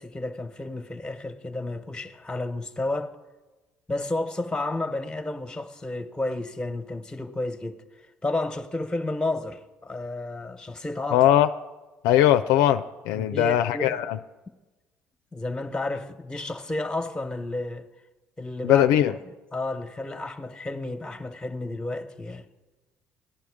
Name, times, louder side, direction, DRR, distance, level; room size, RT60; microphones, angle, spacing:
voice 1, 0.0-3.2 3.9-7.8 8.2-11.3 13.1-14.0 15.3-17.9 18.4-22.4, left 2 dB, 10° left, 1.1 m, -31 dB
voice 2, 11.1-11.5 12.0-14.2 18.6-19.1, left 12 dB, 80° left, 0.4 m, -20 dB
15.0 x 10.5 x 4.9 m
supercardioid pair, 70°, 6 cm